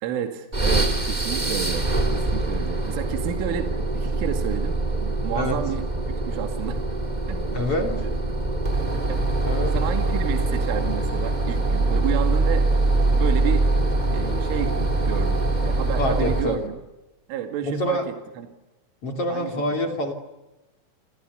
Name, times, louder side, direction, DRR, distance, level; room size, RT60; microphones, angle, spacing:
voice 1, 0.0-5.9 6.3-6.8 7.3-8.1 9.1-9.2 9.7-12.7 13.1-13.7 14.1-16.8 17.3-18.5 19.3-19.5, right 10 dB, 75° right, 5 dB, 4.6 m, -31 dB
sound 1, 0.5-16.7, right 2 dB, 15° right, 1.4 m, -23 dB
voice 2, 7.5-7.9 9.4-9.7 16.0-16.6 17.6-18.0 19.0-20.1, left 1 dB, 35° left, 4 dB, 3.0 m, -26 dB
29.5 x 27.0 x 7.0 m, 1.0 s
omnidirectional pair, 5.8 m